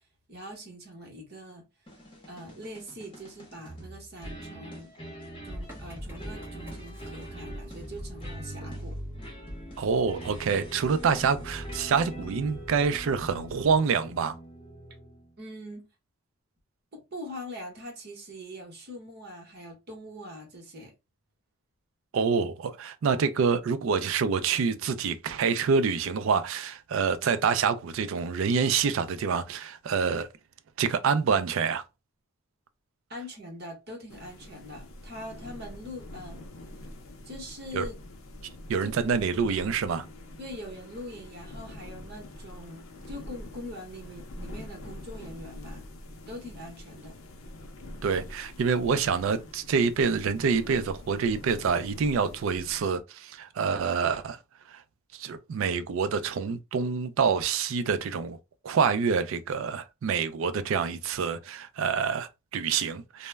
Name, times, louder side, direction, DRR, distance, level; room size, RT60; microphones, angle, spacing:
voice 1, 0.3-1.7 2.3-4.9 5.4-9.0 15.4-15.9 16.9-20.9 33.1-36.4 37.2-38.0 38.8-38.9 40.4-45.8 46.3-47.1, equal, 45° right, 0.9 m, -43 dB
sound 1, 1.9-15.3, right 1 dB, 25° left, 0.7 m, -43 dB
Motor vehicle (road) / Engine starting, 5.5-13.8, equal, 10° right, 0.6 m, -45 dB
voice 2, 9.8-14.4 22.1-30.3 30.8-31.8 37.7-37.9 38.7-40.0 48.0-54.4 54.7-54.8 55.1-58.4 58.6-63.3, right 5 dB, 65° right, 0.3 m, -27 dB
sound 2, 34.1-52.8, left 1 dB, 70° left, 0.5 m, -45 dB
2.1 x 2.0 x 3.2 m
head